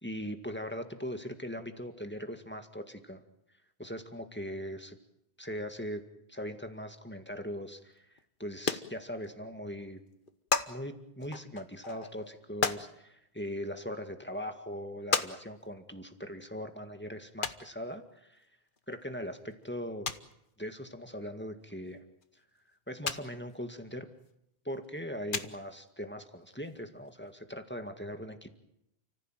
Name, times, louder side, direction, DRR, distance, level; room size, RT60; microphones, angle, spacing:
voice 1, 0.0-3.2 3.8-5.0 5.4-6.0 6.3-8.1 8.4-10.0 10.7-18.5 18.9-20.1 20.6-22.0 22.9-24.1 24.7-28.5, equal, 10° left, 6 dB, 2.0 m, -40 dB
sound 1, 8.2-8.3 8.5-9.5 9.8-9.9 10.1-10.7 11.2-12.9 13.7-13.8 14.3-14.4 15.1-15.3 15.6-15.7 17.4-17.6 18.8-18.9 19.3-19.4 19.6-19.7 20.1-20.3 21.7-21.8 22.2-22.3 23.1-23.2 23.5-23.6 24.8-25.0 25.3-25.7 26.7-26.8 27.0-27.1 27.2-27.3, left 5 dB, 55° left, 1.3 m, -33 dB
30.0 x 15.0 x 9.2 m, 0.82 s
omnidirectional pair, 1.1 m